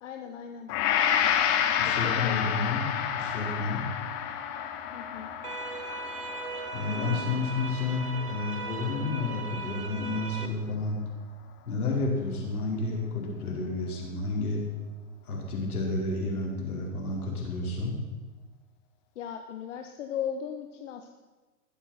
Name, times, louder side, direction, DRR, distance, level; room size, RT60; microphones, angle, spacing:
voice 1, 0.0-0.7 1.8-2.6 4.9-5.3 19.2-21.1, left 8 dB, 55° left, 5 dB, 1.2 m, -37 dB
Gong, 0.7-9.0 9.5-9.6, left 9 dB, 30° left, 1.2 m, -30 dB
voice 2, 1.8-3.8 6.7-11.0 11.7-14.6 15.2-18.0, left 3 dB, 75° left, -2 dB, 5.2 m, -31 dB
sound 1, 5.4-10.5, right 4 dB, 80° right, 1.6 m, -38 dB
20.0 x 7.5 x 5.9 m, 1.2 s
hypercardioid pair, 125°, 44 cm